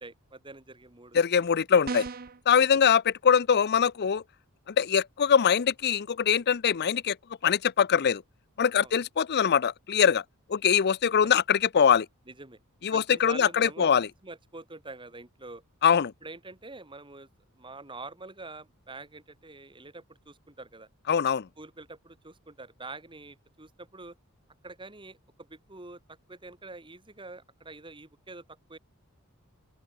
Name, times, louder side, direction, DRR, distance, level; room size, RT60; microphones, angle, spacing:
voice 1, 0.0-1.2 2.7-2.8 8.8-8.9 11.2-11.4 12.3-12.6 12.9-13.9 14.2-15.6 16.2-17.3 17.6-20.9 21.6-24.1 24.6-26.0 26.3-28.8, right 3 dB, 20° right, 2.8 m, -45 dB
voice 2, 1.1-2.1 2.5-4.2 4.7-7.2 7.4-8.2 8.6-10.2 10.5-12.1 12.8-14.1 15.8-16.1 21.1-21.5, left 7 dB, 50° left, 0.5 m, -23 dB
sound 1, 1.8-2.4, right 4 dB, 40° right, 0.8 m, -35 dB
open air
head